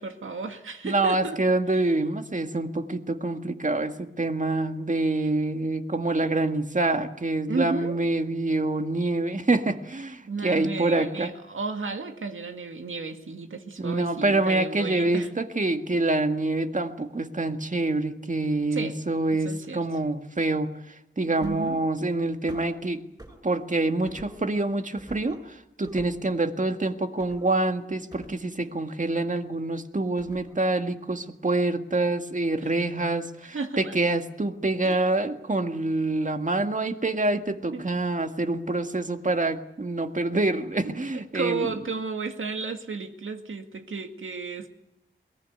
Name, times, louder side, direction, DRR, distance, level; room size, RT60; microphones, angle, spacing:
voice 1, 0.0-1.4 1.7-1.9 7.5-8.0 10.3-15.3 18.7-19.0 19.4-19.9 21.4-21.8 32.6-32.7 33.5-34.0 34.8-35.0 37.7-37.9 40.8-44.7, right 4 dB, 85° right, 6 dB, 2.1 m, -33 dB
voice 2, 0.8-11.3 13.8-20.7 21.2-23.0 23.4-41.7, right 2 dB, 40° right, 7 dB, 1.9 m, -26 dB
sound 1, 21.4-21.8 22.5-22.7 23.2-23.4 24.0-24.5 25.0-25.5 25.8-26.2 27.2-27.5 28.1-28.9 30.2-30.7 31.0-31.1, right 1 dB, 20° right, 7.4 m, -47 dB
22.0 x 19.0 x 9.6 m, 0.88 s
wide cardioid pair, 65°, 20 cm